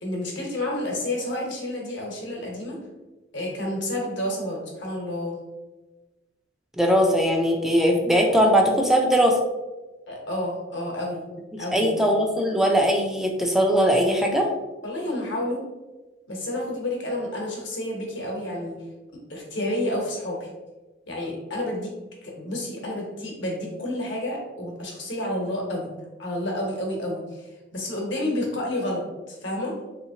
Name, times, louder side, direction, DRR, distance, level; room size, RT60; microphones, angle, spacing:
voice 1, 0.0-2.8 3.3-5.4 10.1-11.3 11.6-12.0 14.8-15.6 16.3-18.8 19.3-20.4 21.1-21.9 22.2-25.9 26.2-29.7, left 1 dB, 65° left, -1 dB, 1.0 m, -30 dB
voice 2, 6.8-9.4 11.7-14.5, equal, ahead, 1 dB, 0.3 m, -20 dB
3.4 x 2.9 x 2.7 m, 1.1 s
head